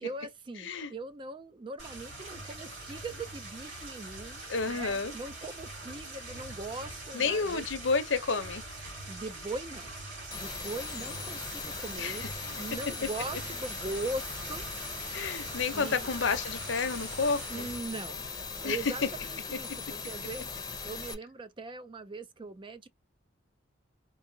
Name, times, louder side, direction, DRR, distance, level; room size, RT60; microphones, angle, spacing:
voice 1, 0.0-7.6 9.1-9.9 10.3-14.6 15.7-16.1 17.5-18.2 18.6-22.9, right 2 dB, 25° right, 0.4 m, -40 dB
voice 2, 0.6-0.9 4.5-5.1 7.1-8.6 12.0-12.3 15.1-17.7 18.6-19.1, left 4 dB, 70° left, 0.7 m, -30 dB
sound 1, 1.8-17.8, right 2 dB, 80° right, 2.7 m, -43 dB
sound 2, 10.3-21.1, left 5 dB, 20° left, 0.7 m, -40 dB
4.0 x 2.7 x 2.7 m
head